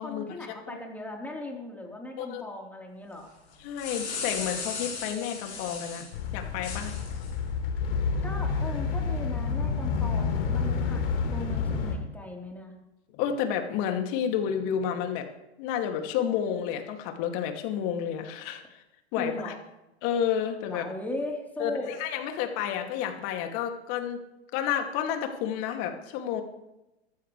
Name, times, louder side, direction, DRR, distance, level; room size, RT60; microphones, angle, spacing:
voice 1, 0.0-3.3 8.2-12.7 19.2-19.6 20.7-21.9, left 1 dB, 5° left, -1 dB, 3.9 m, -38 dB
sound 1, 3.5-6.1 6.6-7.3, left 4 dB, 85° left, 6.8 m, -36 dB
voice 2, 3.6-6.9 13.1-15.3 15.6-18.8 19.1-19.5 20.0-20.9 21.6-24.2 24.5-26.4, left 9 dB, 45° left, 4 dB, 2.5 m, -30 dB
sound 2, 6.1-11.9, left 5 dB, 60° left, 3.4 m, -29 dB
23.5 x 12.0 x 3.3 m, 0.95 s
hypercardioid pair, 115°, 33 cm